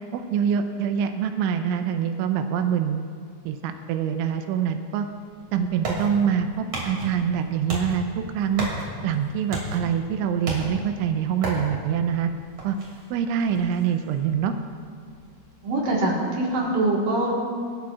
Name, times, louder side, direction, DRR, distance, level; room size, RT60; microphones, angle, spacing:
voice 1, 0.1-3.0 3.5-5.1 5.5-8.1 8.3-8.7 9.0-12.3 12.6-12.8 13.1-14.5, right 8 dB, 85° right, 7 dB, 3.1 m, -25 dB
sound 1, 5.1-16.6, right 2 dB, 45° right, 2.9 m, -36 dB
voice 2, 15.6-17.3, right 2 dB, 60° right, -3 dB, 2.5 m, -23 dB
23.5 x 12.5 x 2.4 m, 2.1 s
omnidirectional pair, 5.4 m